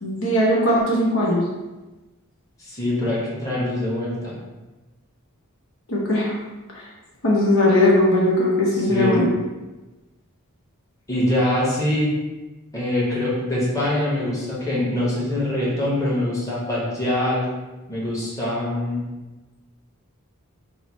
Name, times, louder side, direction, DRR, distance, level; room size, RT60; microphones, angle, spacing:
voice 1, 0.0-1.4 5.9-6.3 7.2-9.3, left 1 dB, 60° left, -4 dB, 0.9 m, -19 dB
voice 2, 2.6-4.3 8.7-9.2 11.1-12.1 12.7-17.5 17.9-19.0, left 1 dB, 15° left, -7 dB, 1.1 m, -24 dB
4.4 x 2.1 x 4.4 m, 1.1 s
head